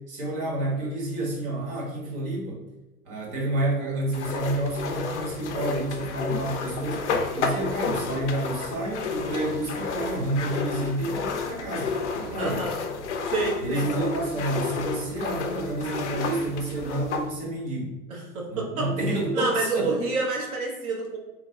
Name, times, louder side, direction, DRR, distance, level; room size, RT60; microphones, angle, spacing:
voice 1, 0.0-2.6 3.0-12.6 13.6-18.0 18.5-20.0, right 1 dB, 35° right, -3 dB, 1.4 m, -29 dB
sound 1, 4.1-17.3, left 5 dB, 50° left, 0.5 m, -31 dB
voice 2, 12.4-12.7 13.3-13.9 18.1-18.9 19.3-21.2, right 3 dB, 65° right, -2 dB, 1.2 m, -28 dB
3.2 x 2.3 x 3.9 m, 1.1 s
figure-of-eight pair, 100°, 45 cm